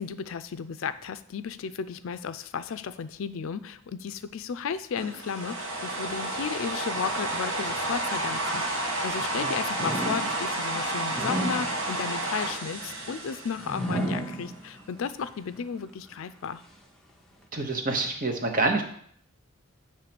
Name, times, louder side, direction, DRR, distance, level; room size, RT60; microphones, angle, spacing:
voice 1, 0.0-16.6, left 6 dB, 70° left, 12 dB, 0.4 m, -34 dB
sound 1, 5.0-14.2, right 1 dB, 65° right, 1.5 m, -31 dB
sound 2, 7.7-9.3 9.7-15.0 15.5-15.6 16.4-16.5, right 1 dB, ahead, 0.7 m, -35 dB
voice 2, 17.5-18.8, right 3 dB, 40° right, 4 dB, 1.0 m, -27 dB
8.2 x 3.2 x 5.9 m, 0.64 s
head